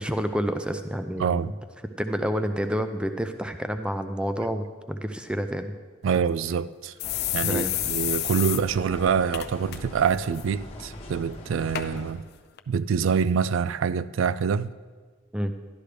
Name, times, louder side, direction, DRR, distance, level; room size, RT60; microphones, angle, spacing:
voice 1, 0.0-1.5 2.0-5.7 7.4-7.7 15.3-15.5, equal, 5° right, 0.4 m, -29 dB
voice 2, 1.2-1.5 6.0-6.9 7.3-12.2 12.7-14.7, right 6 dB, 70° right, 0.3 m, -25 dB
sound 1, 6.1-6.2 6.5-6.6 7.0-8.6 8.9-9.0 9.3-9.8 10.1-10.4 11.1-11.2 11.7-11.9 12.6-12.7, left 14 dB, 50° left, 0.5 m, -29 dB
sound 2, 7.0-12.1, left 1 dB, 30° left, 1.0 m, -41 dB
12.0 x 11.5 x 3.3 m
head